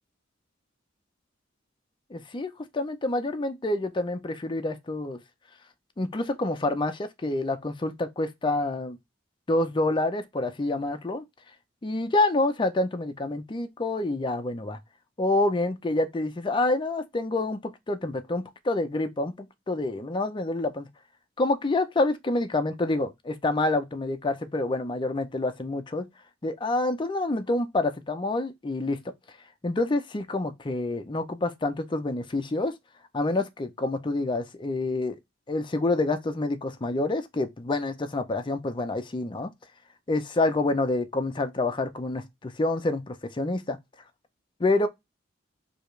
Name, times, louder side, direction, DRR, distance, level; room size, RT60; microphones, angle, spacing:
voice 1, 2.1-5.2 6.0-9.0 9.5-11.2 11.8-14.8 15.2-20.9 21.4-26.1 26.4-29.0 29.6-32.7 33.1-35.2 35.5-39.5 40.1-43.8 44.6-44.9, left 2 dB, 25° left, 0.5 m, -27 dB
4.8 x 2.4 x 3.1 m
head